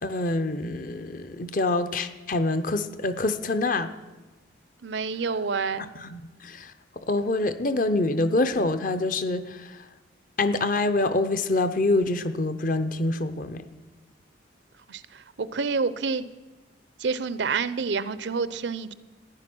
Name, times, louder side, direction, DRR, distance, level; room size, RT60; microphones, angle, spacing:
voice 1, 0.0-3.9 6.0-6.7 7.1-9.7 10.4-13.6, left 2 dB, 45° left, 11 dB, 0.7 m, -26 dB
voice 2, 4.8-5.9 14.9-16.3 17.0-18.9, right 4 dB, 65° right, 15 dB, 0.6 m, -28 dB
14.5 x 10.0 x 6.1 m, 1.2 s
head